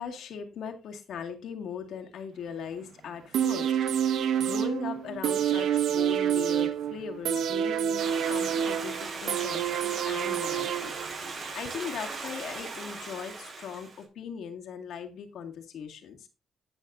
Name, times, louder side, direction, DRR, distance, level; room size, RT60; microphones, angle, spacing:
voice 1, 0.0-3.8 4.1-10.9 11.2-16.3, left 7 dB, 70° left, 4 dB, 2.0 m, -39 dB
sound 1, 3.3-11.3 11.7-11.8, right 9 dB, 75° right, 0.9 m, -28 dB
Stream, 8.0-14.0, right 4 dB, 55° right, 5.5 m, -38 dB
17.0 x 6.4 x 2.6 m, 0.29 s
cardioid pair, 90°, 0 cm